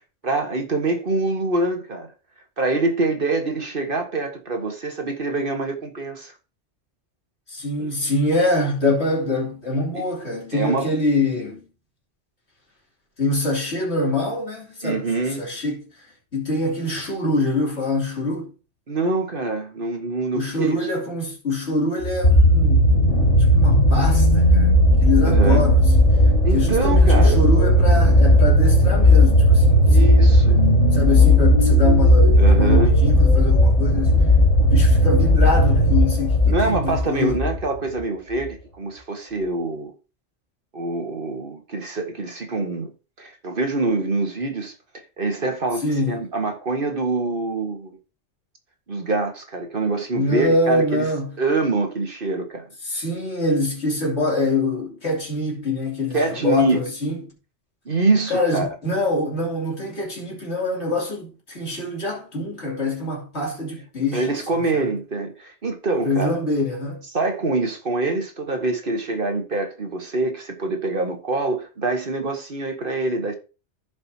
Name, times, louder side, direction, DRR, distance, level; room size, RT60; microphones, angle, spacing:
voice 1, 0.2-2.1 2.6-6.3 7.8-7.9 10.0-10.1 10.5-10.9 14.8-15.5 18.9-20.9 25.2-25.6 26.4-27.4 29.8-30.6 32.4-32.9 36.4-39.9 40.7-42.9 43.2-44.7 45.2-48.0 48.9-51.1 51.4-52.6 56.1-56.8 57.8-58.7 64.1-66.4 67.1-73.3, right 3 dB, 50° right, 1.5 m, -25 dB
voice 2, 7.5-11.6 13.2-15.1 15.4-15.8 16.3-18.5 20.3-22.9 23.5-24.7 25.0-26.1 26.5-30.1 30.9-34.3 34.6-37.4 45.8-46.2 50.1-51.4 52.8-57.2 58.3-64.3 64.7-64.8 66.0-67.0, left 2 dB, 65° left, 3.2 m, -24 dB
sound 1, 22.0-37.6 38.4-38.5, equal, 90° left, 3.2 m, -15 dB
15.5 x 5.3 x 2.8 m
omnidirectional pair, 1.2 m